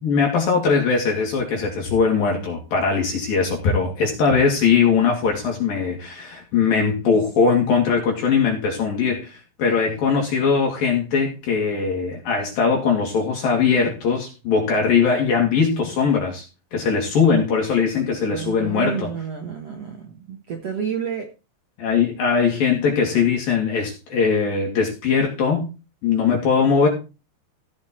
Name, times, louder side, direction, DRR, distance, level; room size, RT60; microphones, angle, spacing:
voice 1, 0.0-16.4 16.7-19.1 21.8-25.7 26.0-26.9, left 5 dB, 60° left, 3.7 m, -20 dB
voice 2, 18.3-21.3, right 7 dB, 70° right, 1.5 m, -30 dB
16.0 x 5.7 x 4.4 m
omnidirectional pair, 5.0 m